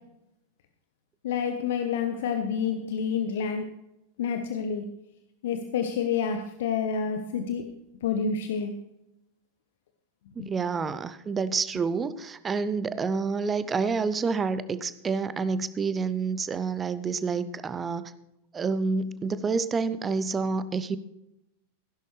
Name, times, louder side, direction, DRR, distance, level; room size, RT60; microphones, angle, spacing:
voice 1, 1.2-3.6 4.2-4.8 5.4-7.6 8.0-8.7 10.4-10.5, left 6 dB, 55° left, 6 dB, 1.0 m, -28 dB
voice 2, 10.4-18.1 18.5-21.0, right 4 dB, 20° right, 14 dB, 0.7 m, -28 dB
16.0 x 11.0 x 3.3 m, 0.87 s
figure-of-eight pair, 90°, 0 cm